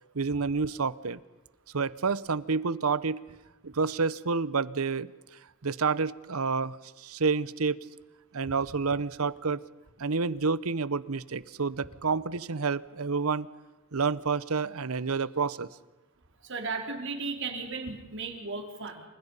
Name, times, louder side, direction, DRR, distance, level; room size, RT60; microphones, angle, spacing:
voice 1, 0.1-1.2 1.7-3.2 3.6-5.1 5.6-7.8 8.3-9.6 10.0-13.5 13.9-15.7, right 4 dB, 90° right, 18 dB, 0.9 m, -29 dB
voice 2, 16.4-19.0, right 4 dB, 60° right, 3 dB, 4.0 m, -35 dB
28.5 x 27.0 x 5.6 m, 1.1 s
head